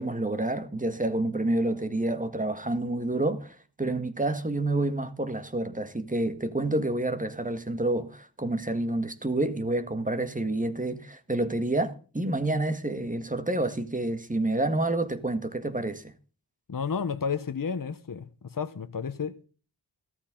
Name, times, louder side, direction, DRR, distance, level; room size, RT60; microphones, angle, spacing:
voice 1, 0.0-16.1, right 2 dB, 20° right, 1.8 m, -28 dB
voice 2, 16.7-19.4, left 6 dB, 55° left, 1.2 m, -32 dB
15.5 x 13.5 x 3.8 m
wide cardioid pair, 85°, 40 cm